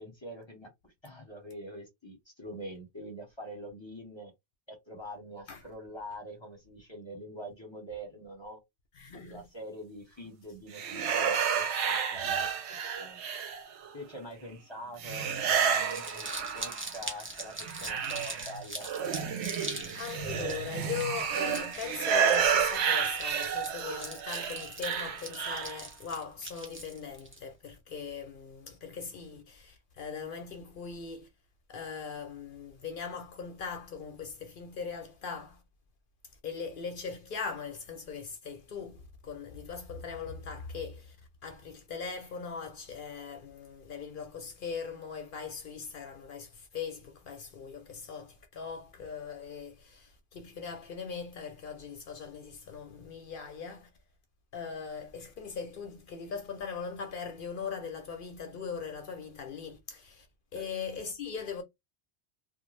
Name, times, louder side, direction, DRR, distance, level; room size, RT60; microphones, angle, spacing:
voice 1, 0.0-4.3 4.7-8.6 9.1-13.2 13.9-16.3 16.5-18.9 60.5-60.7, right 1 dB, 30° left, 0.8 m, -44 dB
voice 2, 8.9-9.5 12.2-12.3 19.9-31.3 31.7-35.6 36.4-41.2 41.4-53.9 54.5-60.3 60.5-61.6, left 6 dB, 60° left, 0.7 m, -40 dB
sound 1, 10.7-13.9 15.0-17.0 17.4-25.8, right 7 dB, 85° right, 0.9 m, -31 dB
Crumpling crinkling, 15.6-27.4, right 1 dB, 15° right, 0.6 m, -42 dB
2.6 x 2.1 x 3.1 m
omnidirectional pair, 1.1 m